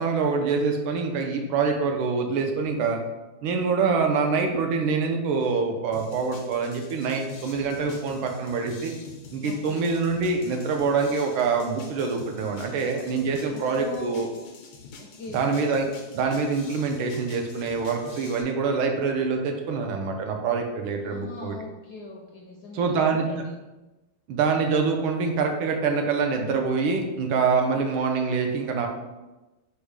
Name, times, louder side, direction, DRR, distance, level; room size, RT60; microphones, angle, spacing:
voice 1, 0.0-3.0 3.4-8.9 9.3-14.3 15.3-15.9 16.1-21.6 22.7-23.3 24.3-28.9, right 5 dB, 85° right, 3 dB, 1.5 m, -25 dB
sound 1, 5.9-18.4, left 3 dB, 90° left, 1.5 m, -45 dB
voice 2, 9.4-9.9 13.5-14.3 15.0-15.4 21.0-23.5, left 3 dB, 75° left, 0 dB, 0.9 m, -39 dB
5.0 x 2.2 x 4.6 m, 1.1 s
omnidirectional pair, 2.2 m